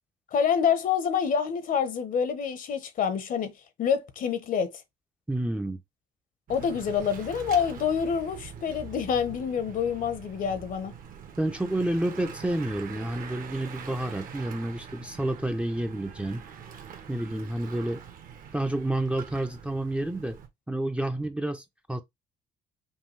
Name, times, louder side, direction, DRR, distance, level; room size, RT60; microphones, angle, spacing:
voice 1, 0.3-3.5 3.8-4.8 6.5-10.9, left 7 dB, 55° left, 0.8 m, -27 dB
voice 2, 5.3-5.8 11.4-16.5 17.1-18.0 18.5-20.4 20.7-22.0, right 1 dB, 5° right, 0.5 m, -29 dB
Bicycle / Mechanisms, 6.5-20.5, right 7 dB, 55° right, 1.0 m, -44 dB
5.4 x 2.2 x 3.2 m
cardioid pair, 110°, 17 cm